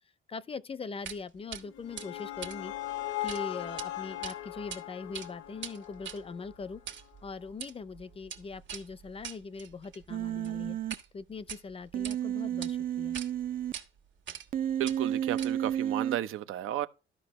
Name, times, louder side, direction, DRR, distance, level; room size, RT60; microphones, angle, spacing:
voice 1, 0.3-2.7 3.2-6.8 7.2-10.8 11.1-13.2, left 4 dB, 25° left, 0.5 m, -41 dB
sound 1, 1.0-1.2 1.5-1.6 2.0-3.4 3.7-3.9 4.2-4.8 5.1-11.1 11.4-12.2 12.6-12.7 13.1-13.3 13.7-13.8 14.3-14.6 14.8-15.8, right 8 dB, 65° right, 1.5 m, -43 dB
sound 2, 1.5-6.7, left 14 dB, 70° left, 0.7 m, -39 dB
Human voice, 10.1-10.9 11.9-13.7 14.5-16.2, right 10 dB, 45° right, 0.5 m, -31 dB
voice 2, 14.8-16.9, right 13 dB, 80° right, 0.7 m, -33 dB
13.0 x 5.3 x 3.0 m
cardioid pair, 105°, 21 cm